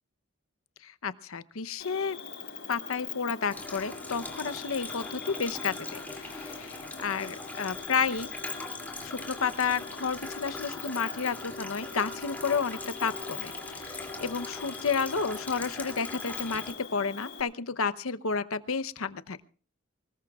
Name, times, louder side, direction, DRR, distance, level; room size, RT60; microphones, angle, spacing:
voice 1, 0.8-2.2 2.7-8.3 9.0-19.4, left 5 dB, 80° left, 12 dB, 0.8 m, -31 dB
Cricket, 1.8-17.4, left 7 dB, 60° left, 6.8 m, -43 dB
sound 1, 3.5-16.7, left 2 dB, 10° left, 2.7 m, -41 dB
24.5 x 20.5 x 2.4 m, 0.39 s
head